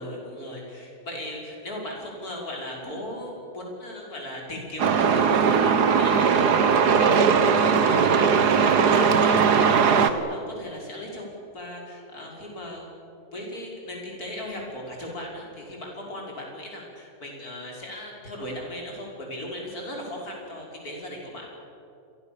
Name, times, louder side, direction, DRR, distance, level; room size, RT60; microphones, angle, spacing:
voice 1, 0.0-9.7 10.0-12.9 13.3-21.5, left 1 dB, 65° left, -1 dB, 6.1 m, -37 dB
Truck, 4.8-10.1, right 6 dB, 85° right, 1.9 m, -19 dB
29.0 x 23.5 x 7.1 m, 2.9 s
omnidirectional pair, 1.7 m